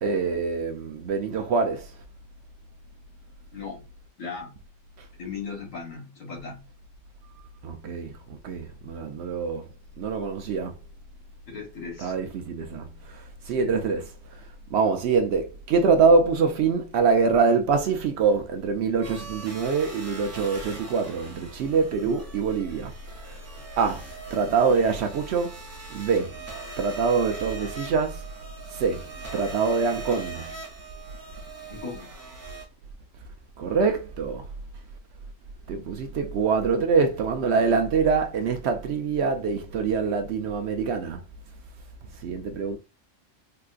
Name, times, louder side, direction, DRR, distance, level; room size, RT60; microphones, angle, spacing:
voice 1, 0.0-2.0 5.0-5.1 7.6-9.7 10.0-10.8 12.0-22.9 23.3-23.4 23.8-25.6 25.9-26.4 26.8-28.3 28.7-30.6 33.6-34.5 35.7-41.2 42.0-42.8, right 5 dB, 65° right, 0.7 m, -25 dB
voice 2, 3.5-3.8 4.2-4.6 5.2-6.7 11.5-12.1 13.6-13.7 31.7-32.1, left 5 dB, 80° left, 1.4 m, -37 dB
sound 1, 19.0-32.6, right 3 dB, 20° right, 0.4 m, -41 dB
3.7 x 2.4 x 2.4 m
omnidirectional pair, 1.3 m